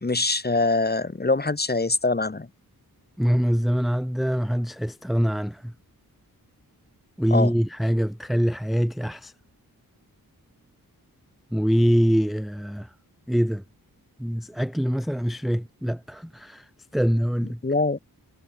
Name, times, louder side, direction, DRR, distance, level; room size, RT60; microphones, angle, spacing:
voice 1, 0.0-2.5 7.3-7.5 17.6-18.0, left 3 dB, 25° left, 2.1 m, -23 dB
voice 2, 3.2-5.7 7.2-9.3 11.5-12.9 13.3-13.6 14.2-17.6, equal, ahead, 0.7 m, -24 dB
wide cardioid pair, 105°, 37 cm